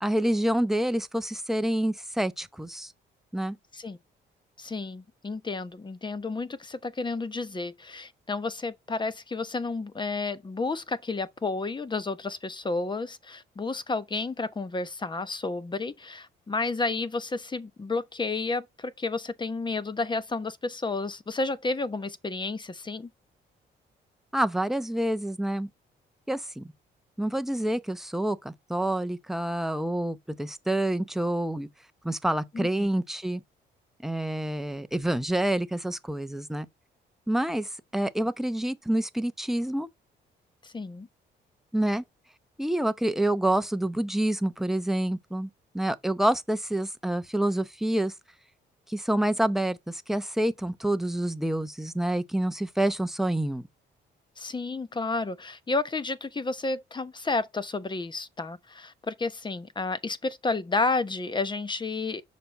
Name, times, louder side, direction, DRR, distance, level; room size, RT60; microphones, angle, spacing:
voice 1, 0.0-2.9 3.3-3.6 24.3-25.7 26.3-26.7 27.2-31.7 32.0-33.4 34.0-36.7 37.3-39.9 41.7-42.0 42.6-45.5 45.7-48.1 48.9-53.6, right 1 dB, ahead, 0.7 m, -27 dB
voice 2, 4.6-23.1 32.5-32.9 40.6-41.1 54.4-62.2, left 3 dB, 25° left, 0.9 m, -31 dB
6.8 x 5.2 x 4.1 m
cardioid pair, 90°, 20 cm